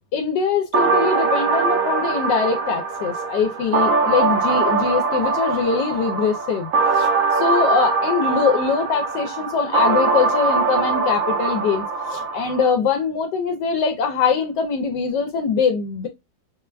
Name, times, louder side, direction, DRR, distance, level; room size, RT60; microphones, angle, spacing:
voice 1, 0.1-16.1, left 5 dB, 85° left, 1.2 m, -22 dB
sound 1, 0.7-12.7, right 4 dB, 60° right, 1.0 m, -22 dB
5.5 x 2.2 x 2.3 m
omnidirectional pair, 1.9 m